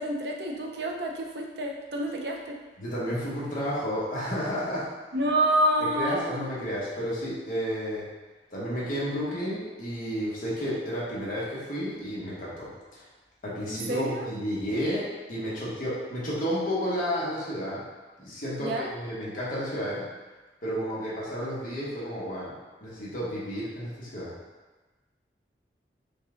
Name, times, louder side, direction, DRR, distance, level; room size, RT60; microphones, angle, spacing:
voice 1, 0.0-2.6 5.1-6.4 13.7-14.3 18.6-18.9, right 1 dB, 70° right, 1 dB, 0.6 m, -28 dB
voice 2, 2.8-4.8 6.0-8.0 8.5-13.0 13.4-17.8 18.2-20.0 20.6-22.5 22.8-24.3, equal, 50° left, -8 dB, 1.1 m, -31 dB
5.3 x 2.3 x 3.7 m, 1.2 s
head